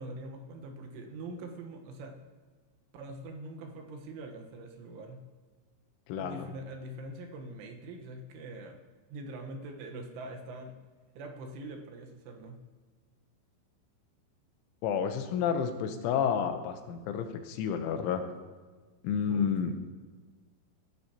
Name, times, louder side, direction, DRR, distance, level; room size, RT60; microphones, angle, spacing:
voice 1, 0.0-2.2 2.9-5.2 6.2-8.8 9.1-10.7 11.2-12.6 19.3-19.7, right 2 dB, 85° right, 2 dB, 3.8 m, -43 dB
voice 2, 6.1-6.5 14.8-18.2 19.0-19.7, left 7 dB, 85° left, 7 dB, 3.4 m, -30 dB
18.5 x 11.0 x 2.9 m, 1.4 s
omnidirectional pair, 5.4 m